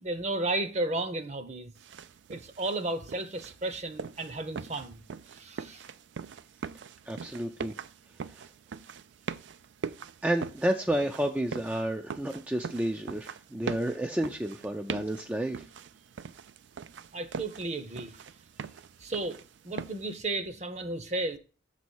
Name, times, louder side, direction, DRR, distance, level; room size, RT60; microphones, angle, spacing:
voice 1, 0.0-1.7 2.3-5.0 5.3-5.9 17.1-18.2 19.0-21.4, right 2 dB, 35° right, 0.8 m, -33 dB
sound 1, 1.8-20.1, right 6 dB, 75° right, 0.4 m, -42 dB
voice 2, 7.1-7.7 10.2-15.6, right 1 dB, 10° right, 0.4 m, -30 dB
6.9 x 4.2 x 6.3 m
head